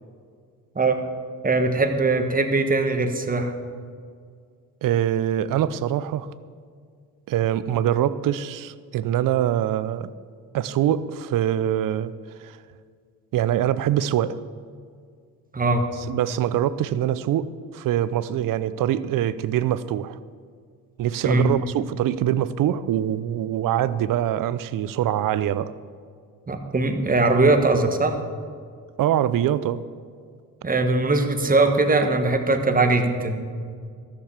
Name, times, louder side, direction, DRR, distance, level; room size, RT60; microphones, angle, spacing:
voice 1, 1.4-3.5 15.5-15.9 21.2-21.5 26.5-28.2 30.6-33.4, right 3 dB, 25° right, 1.5 m, -21 dB
voice 2, 4.8-6.3 7.3-10.1 10.5-12.1 12.4-12.6 13.3-14.4 16.1-20.2 21.0-25.7 29.0-29.8, right 11 dB, 65° right, 0.6 m, -24 dB
13.5 x 6.9 x 7.2 m
supercardioid pair, 70°, 35 cm